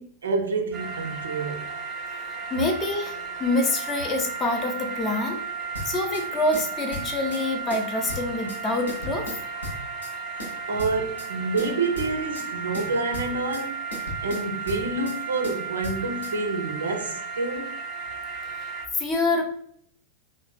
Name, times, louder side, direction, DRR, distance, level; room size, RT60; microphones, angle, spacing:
voice 1, 0.0-1.7 10.7-13.7 14.2-17.7, right 3 dB, 70° right, 0.4 m, -28 dB
sound 1, 0.7-18.9, right 5 dB, 25° right, 0.6 m, -34 dB
voice 2, 2.5-5.4 5.8-9.3 18.9-19.4, left 2 dB, 25° left, 0.5 m, -26 dB
sound 2, 5.7-6.3 6.5-7.4 7.7-8.6 8.9-10.1 10.4-11.3 11.6-12.5 12.7-13.6 13.9-15.2 15.4-16.3, left 1 dB, 70° left, 0.7 m, -37 dB
3.1 x 2.1 x 2.3 m
figure-of-eight pair, 90°, 0 cm